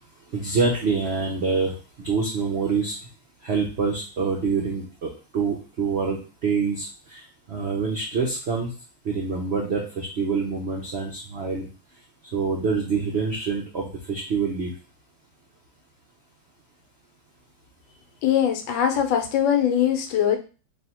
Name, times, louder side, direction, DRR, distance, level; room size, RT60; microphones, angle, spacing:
voice 1, 0.3-2.9 3.4-8.7 9.0-11.7 12.3-14.7, right 5 dB, 85° right, -1 dB, 0.5 m, -26 dB
voice 2, 18.2-20.4, left 9 dB, 80° left, 6 dB, 1.4 m, -21 dB
3.2 x 2.7 x 4.2 m, 0.35 s
omnidirectional pair, 2.1 m